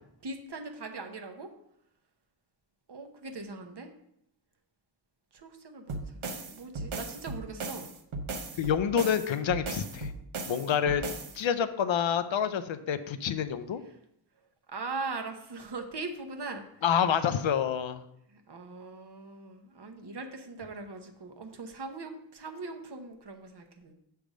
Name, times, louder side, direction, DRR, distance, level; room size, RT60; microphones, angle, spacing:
voice 1, 0.2-1.5 2.9-3.9 5.3-7.9 14.7-16.6 18.3-23.9, right 3 dB, 55° right, 5 dB, 0.9 m, -40 dB
sound 1, 5.9-11.4, right 3 dB, 85° right, 0.9 m, -37 dB
voice 2, 8.6-10.1 10.5-11.0 11.3-13.8 16.8-18.0, left 8 dB, 75° left, 10 dB, 0.6 m, -28 dB
6.4 x 3.4 x 6.1 m, 0.77 s
wide cardioid pair, 65°, 47 cm